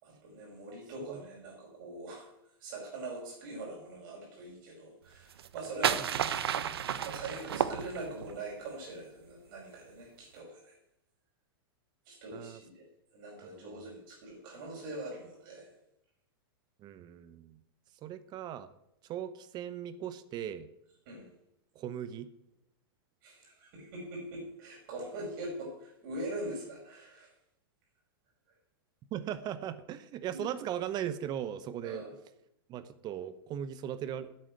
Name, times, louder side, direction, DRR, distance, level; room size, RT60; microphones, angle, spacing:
voice 1, 0.0-2.3 2.6-6.0 7.0-10.7 12.1-12.8 13.1-15.7 21.1-21.3 23.2-27.3 30.3-30.4 31.8-32.1, right 2 dB, 55° right, -2 dB, 5.5 m, -43 dB
sound 1, 5.3-8.3, right 9 dB, 75° right, 1.0 m, -32 dB
voice 2, 13.5-13.8 16.8-17.6 18.0-18.7 19.0-20.7 21.7-22.3 29.1-32.0 32.7-34.3, right 10 dB, 35° right, 14 dB, 0.9 m, -38 dB
10.0 x 8.7 x 9.4 m, 0.80 s
hypercardioid pair, 115°, 13 cm